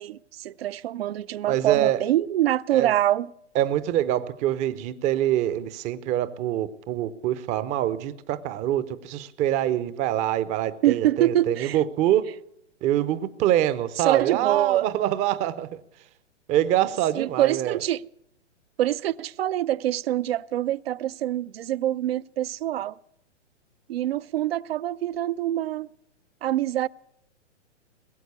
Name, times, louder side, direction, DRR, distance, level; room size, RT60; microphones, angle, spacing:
voice 1, 0.0-3.3 10.8-11.8 14.0-14.9 17.1-18.0 18.8-23.0 23.9-25.9 26.4-26.9, right 13 dB, 55° right, 0.5 m, -25 dB
voice 2, 1.5-2.0 2.7-2.9 3.5-12.3 12.8-15.8 16.5-17.8, right 12 dB, 20° right, 0.6 m, -25 dB
21.0 x 7.8 x 8.3 m
hypercardioid pair, 120°, 36 cm